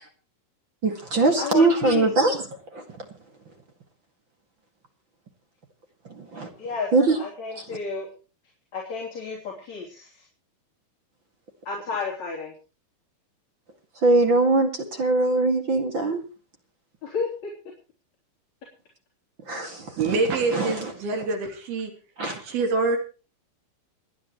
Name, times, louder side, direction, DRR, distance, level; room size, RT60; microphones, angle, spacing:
voice 1, 0.8-2.4 2.7-2.8 6.2-6.5 6.9-7.2 7.6-7.7 14.0-16.2 19.5-20.0 20.5-20.7 22.2-22.4, right 3 dB, 40° right, 4 dB, 2.2 m, -21 dB
voice 2, 1.4-2.1 6.6-6.9 7.2-8.1 8.7-10.2 11.7-12.5 17.0-17.3, left 5 dB, 50° left, -3 dB, 4.7 m, -31 dB
voice 3, 20.0-21.9 22.4-23.0, right 3 dB, 80° right, 4 dB, 5.0 m, -25 dB
28.5 x 10.0 x 3.1 m, 0.35 s
omnidirectional pair, 4.3 m